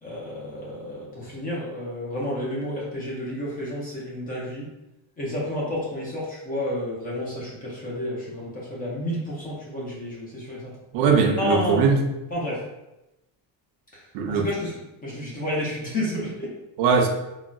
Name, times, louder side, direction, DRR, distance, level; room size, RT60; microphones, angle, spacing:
voice 1, 0.0-4.7 5.2-10.7 11.3-11.9 12.3-12.6 13.9-14.0 14.3-16.5, left 1 dB, 20° left, -6 dB, 0.5 m, -30 dB
voice 2, 10.9-12.0 14.1-14.5 16.8-17.1, right 5 dB, 75° right, 3 dB, 0.6 m, -20 dB
3.8 x 2.1 x 2.2 m, 0.93 s
cardioid pair, 170°, 46 cm